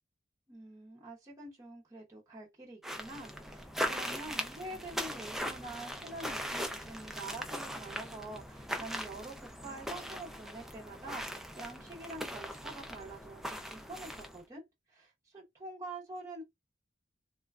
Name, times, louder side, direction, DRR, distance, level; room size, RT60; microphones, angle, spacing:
voice 1, 0.5-14.6 14.9-16.4, right 2 dB, 15° right, 0.7 m, -46 dB
sound 1, 2.8-14.4, equal, ahead, 0.4 m, -40 dB
3.0 x 2.2 x 2.3 m
head